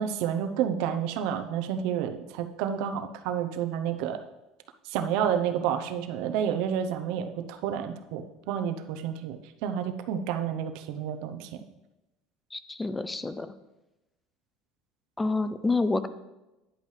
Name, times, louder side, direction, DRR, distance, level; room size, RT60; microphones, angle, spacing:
voice 1, 0.0-4.2 4.8-11.6, right 8 dB, 70° right, 7 dB, 0.8 m, -30 dB
voice 2, 12.5-13.5 15.2-16.1, left 3 dB, 10° left, 13 dB, 0.5 m, -28 dB
10.5 x 8.4 x 3.3 m, 0.99 s
cardioid pair, 140°, 0 cm